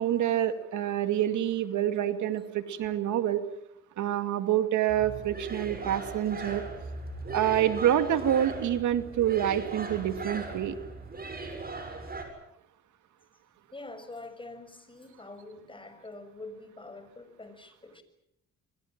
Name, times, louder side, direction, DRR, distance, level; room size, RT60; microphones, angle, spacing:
voice 1, 0.0-3.4 4.0-6.6 7.3-10.8, right 11 dB, 75° right, 9 dB, 2.4 m, -27 dB
sound 1, 4.9-12.2, right 3 dB, 30° right, 7.3 m, -39 dB
voice 2, 13.7-18.0, left 2 dB, 15° left, 9 dB, 6.3 m, -45 dB
27.5 x 23.5 x 7.6 m, 0.76 s
cardioid pair, 90°, 30 cm